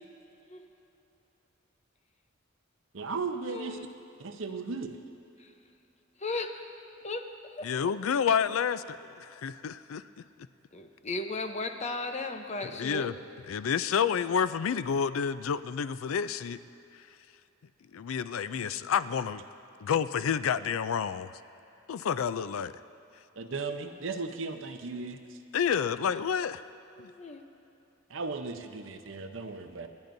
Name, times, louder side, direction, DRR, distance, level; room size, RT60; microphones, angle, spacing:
voice 1, 2.9-3.8 4.2-5.0 23.4-25.4 28.1-29.9, right 4 dB, 65° right, 7 dB, 0.8 m, -36 dB
voice 2, 3.5-3.9 5.4-5.5 6.2-6.6 7.0-7.3 7.6-7.7 10.7-13.1 22.4-22.5 27.0-27.4, left 2 dB, 35° left, 6 dB, 0.7 m, -36 dB
voice 3, 7.6-10.0 12.8-13.1 13.5-16.6 17.9-19.4 19.8-21.3 21.9-22.7 25.5-26.6 27.0-27.1, left 7 dB, 90° left, 14 dB, 0.4 m, -29 dB
28.0 x 10.5 x 2.7 m, 2.9 s
head